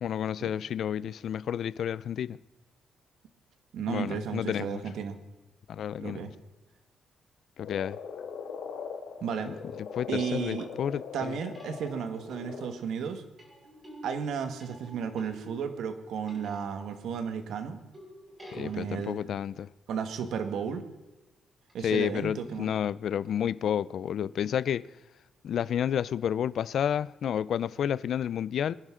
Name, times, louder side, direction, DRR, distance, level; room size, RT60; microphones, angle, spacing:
voice 1, 0.0-2.4 3.9-4.8 5.7-6.3 7.6-8.0 9.5-9.6 9.9-11.4 18.5-19.7 21.8-24.9 25.4-28.7, left 9 dB, 55° left, 0.4 m, -30 dB
voice 2, 3.7-5.2 6.0-6.3 9.2-9.5 10.1-10.7 11.1-13.2 14.0-17.8 18.5-19.2 19.9-20.9 21.7-22.7, right 7 dB, 70° right, 1.4 m, -33 dB
Frog, 7.6-12.7, left 6 dB, 80° left, 1.9 m, -41 dB
sound 1, 9.8-10.1 11.5-17.5 17.9-19.3 21.7-21.8, equal, 20° right, 6.1 m, -49 dB
23.5 x 10.5 x 3.7 m
cardioid pair, 165°, 0 cm